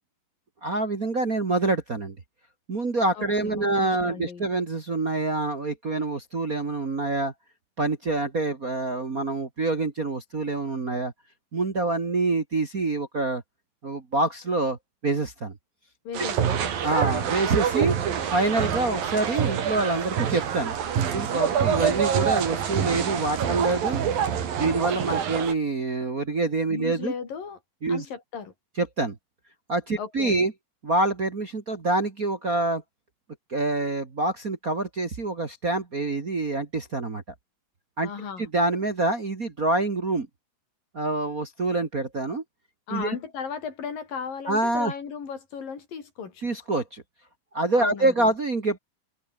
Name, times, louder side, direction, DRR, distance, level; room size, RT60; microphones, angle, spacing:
voice 1, 0.6-2.2 2.7-7.3 7.8-11.1 11.5-13.4 13.8-14.8 15.0-15.5 16.2-16.3 16.8-17.9 18.3-20.7 21.1-24.0 24.6-27.1 27.8-28.1 28.8-29.2 29.7-30.5 30.8-32.8 33.5-37.2 38.0-38.1 38.4-40.3 40.9-42.4 42.9-43.2 44.5-44.9 46.4-47.0 47.5-48.8, right 2 dB, 30° right, 1.8 m, -26 dB
voice 2, 3.2-4.5 16.1-16.7 21.5-22.0 26.7-27.6 27.9-28.5 30.0-30.5 38.0-38.5 42.9-46.5 47.8-48.3, left 6 dB, 80° left, 5.6 m, -36 dB
sound 1, 16.1-25.5, right 8 dB, 85° right, 4.6 m, -26 dB
omnidirectional pair, 4.0 m